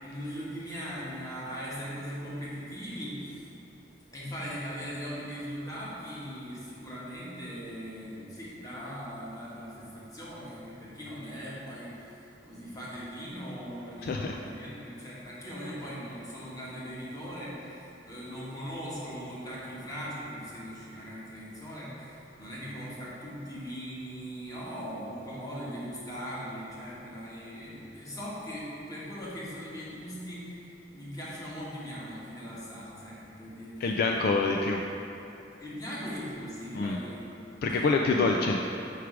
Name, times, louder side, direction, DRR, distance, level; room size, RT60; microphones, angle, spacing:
voice 1, 0.0-3.4 4.1-30.6 30.9-34.0 35.6-37.3 37.8-38.4, equal, 20° left, -7 dB, 1.3 m, -40 dB
voice 2, 14.0-14.3 33.8-34.8 36.7-37.0 37.6-38.6, left 3 dB, 55° left, 1 dB, 0.3 m, -26 dB
4.8 x 4.6 x 4.8 m, 2.9 s
head